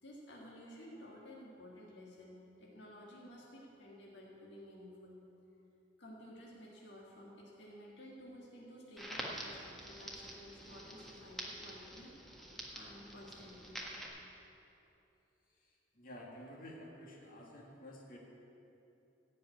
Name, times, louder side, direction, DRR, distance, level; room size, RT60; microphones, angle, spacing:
voice 1, 0.0-5.2 6.0-12.1 12.7-13.9, equal, 65° left, -4 dB, 1.8 m, -53 dB
Crackle, 9.0-14.1, equal, ahead, 1.4 m, -47 dB
voice 2, 15.6-18.2, equal, 50° left, -2 dB, 2.0 m, -52 dB
15.5 x 5.4 x 9.0 m, 2.8 s
head